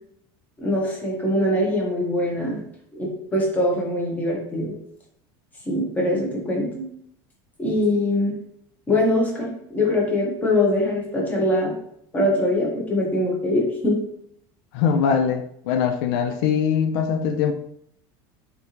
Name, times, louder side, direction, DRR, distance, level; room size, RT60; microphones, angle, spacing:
voice 1, 0.6-2.6 2.9-4.7 5.7-6.8 7.6-8.3 8.9-11.7 12.1-14.0, left 1 dB, 15° left, -3 dB, 1.0 m, -22 dB
voice 2, 14.7-17.5, left 7 dB, 75° left, 7 dB, 0.4 m, -22 dB
3.7 x 3.4 x 2.8 m, 0.71 s
cardioid pair, 155°, 12 cm